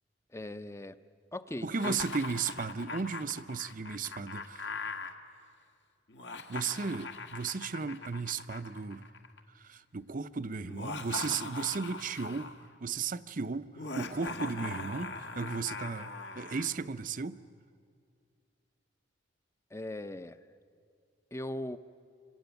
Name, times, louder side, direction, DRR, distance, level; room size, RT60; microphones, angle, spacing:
voice 1, 0.3-1.0 1.3-2.0 19.7-20.4 21.3-21.8, left 1 dB, 15° left, 0.6 m, -39 dB
voice 2, 1.6-4.7 6.5-9.1 9.6-12.5 12.8-17.4, right 5 dB, 45° right, 0.7 m, -35 dB
Laughter, 1.7-5.1 6.1-9.4 10.6-12.6 13.7-16.7, left 3 dB, 65° left, 1.6 m, -41 dB
26.0 x 23.5 x 9.2 m
head